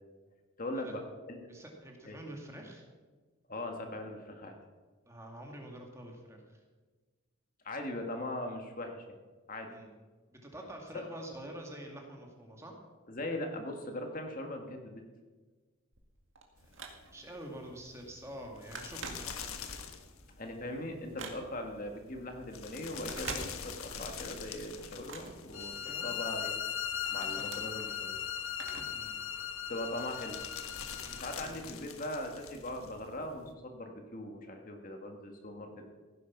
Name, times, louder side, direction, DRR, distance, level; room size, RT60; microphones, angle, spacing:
voice 1, 0.6-1.5 2.0-2.2 3.5-4.5 7.6-9.0 9.5-9.7 10.9-11.1 13.1-15.0 20.4-25.7 26.0-26.5 27.1-28.2 29.7-30.4 31.2-35.9, left 1 dB, 40° left, 3 dB, 1.6 m, -40 dB
voice 2, 1.5-2.8 5.1-6.6 9.7-9.9 10.3-12.7 17.1-19.5 25.7-26.1 27.2-27.4 28.9-29.2 31.0-31.2 31.4-31.7, right 1 dB, 15° right, 1 dB, 2.1 m, -47 dB
Telephone, 15.9-17.4 17.8-18.1 18.3-19.8 20.2-21.8 22.9-24.0 24.4-26.1 26.6-29.1 29.4-29.5 30.4-30.5, right 4 dB, 65° right, 2.0 m, -46 dB
sound 1, 16.6-33.5, left 6 dB, 85° left, 1.4 m, -47 dB
sound 2, 25.5-31.4, left 9 dB, 65° left, 0.9 m, -38 dB
16.0 x 9.9 x 6.0 m, 1.4 s
head